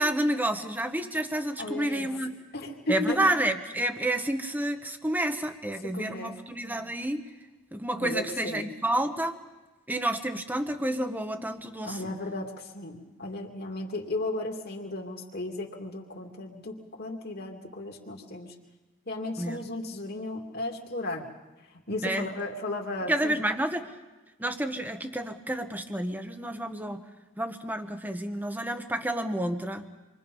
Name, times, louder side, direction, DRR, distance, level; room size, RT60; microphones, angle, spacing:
voice 1, 0.0-2.4 2.9-7.2 7.7-9.4 9.9-12.1 19.4-19.6 22.0-22.3 23.1-23.9 24.4-27.0 27.4-29.9, right 1 dB, 10° right, 7 dB, 1.2 m, -29 dB
voice 2, 1.6-2.1 2.5-3.2 5.9-6.4 8.0-8.7 11.8-18.5 19.1-21.2 21.9-23.5, left 2 dB, 50° left, 1 dB, 2.6 m, -35 dB
27.5 x 23.5 x 5.5 m, 1.1 s
head